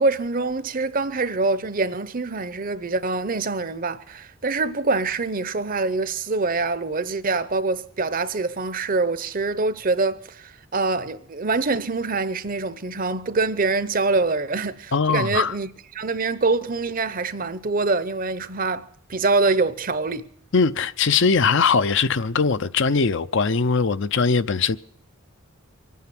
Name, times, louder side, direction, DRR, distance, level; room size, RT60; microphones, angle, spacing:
voice 1, 0.0-20.3, right 3 dB, 40° right, 0.7 m, -25 dB
voice 2, 14.9-15.5 20.5-24.8, left 5 dB, 55° left, 0.6 m, -20 dB
24.5 x 9.4 x 5.9 m
head